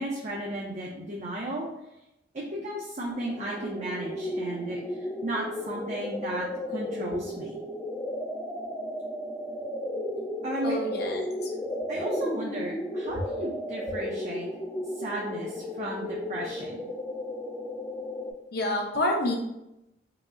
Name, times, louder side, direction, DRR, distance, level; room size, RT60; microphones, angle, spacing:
voice 1, 0.0-1.7 2.3-7.6 10.4-10.8 11.9-14.5 14.9-16.8, right 1 dB, 40° right, -4 dB, 0.5 m, -34 dB
sound 1, 3.1-18.3, left 1 dB, 15° left, 0.4 m, -34 dB
voice 2, 10.6-11.5 18.5-19.3, left 1 dB, 55° left, 1 dB, 0.7 m, -28 dB
4.8 x 2.0 x 2.4 m, 0.86 s
head